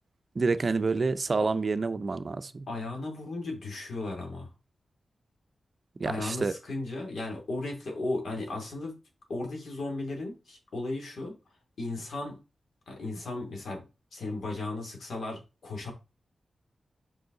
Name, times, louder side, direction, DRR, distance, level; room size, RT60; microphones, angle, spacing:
voice 1, 0.3-2.7 6.0-6.6, right 4 dB, 45° right, 0.5 m, -28 dB
voice 2, 2.7-4.5 6.1-9.0 9.3-11.3 11.8-12.4 12.9-13.8 14.1-15.9, left 2 dB, 80° left, 2.6 m, -35 dB
5.5 x 5.4 x 3.8 m
wide cardioid pair, 105°, 0 cm